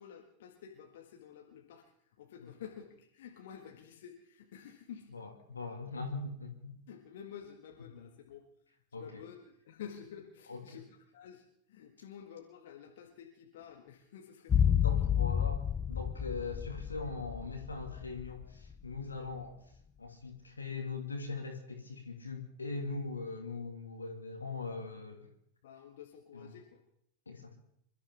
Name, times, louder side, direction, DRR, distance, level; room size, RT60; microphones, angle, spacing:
voice 1, 0.0-5.1 6.9-8.5 8.9-15.0 25.6-26.8, left 8 dB, 55° left, 2 dB, 1.7 m, -50 dB
voice 2, 5.1-6.8 8.9-9.3 10.5-10.8 14.6-15.6 15.9-19.6 20.0-25.2 26.3-26.5 27.3-27.6, left 3 dB, 75° left, 3 dB, 2.3 m, -41 dB
sound 1, 14.5-18.7 19.0-19.1, left 9 dB, 25° left, 0.7 m, -30 dB
27.5 x 13.0 x 3.5 m, 0.70 s
figure-of-eight pair, 90°, 0 cm